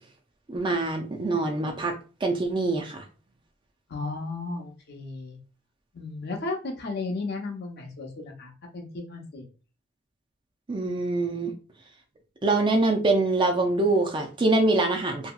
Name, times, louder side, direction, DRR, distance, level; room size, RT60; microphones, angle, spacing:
voice 1, 0.5-1.9 2.2-3.0 10.7-11.5 12.4-15.3, right 2 dB, 25° right, 2 dB, 0.4 m, -24 dB
voice 2, 3.9-5.4 5.9-9.4, left 3 dB, 55° left, 2 dB, 0.7 m, -34 dB
2.9 x 2.8 x 2.2 m, 0.35 s
head